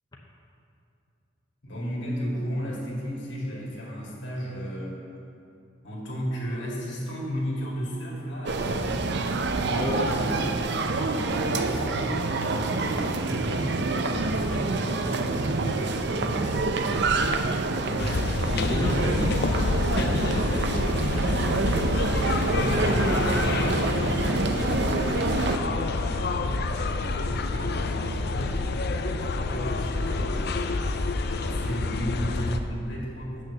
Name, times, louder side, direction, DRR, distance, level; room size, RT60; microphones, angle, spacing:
voice 1, 1.6-5.0 5.8-9.1 11.1-17.0 18.5-19.2 22.2-26.6 26.9-28.6 29.2-30.6 31.3-33.4, equal, 80° left, -4 dB, 2.3 m, -35 dB
sound 1, 8.5-25.6, right 3 dB, 65° right, 0.6 m, -27 dB
voice 2, 9.6-10.6 17.7-18.1 18.5-19.4 19.9-21.5, left 1 dB, 20° left, -2 dB, 0.8 m, -32 dB
sound 2, 18.0-32.6, left 3 dB, 60° left, 0.5 m, -28 dB
8.4 x 6.3 x 6.8 m, 2.7 s
head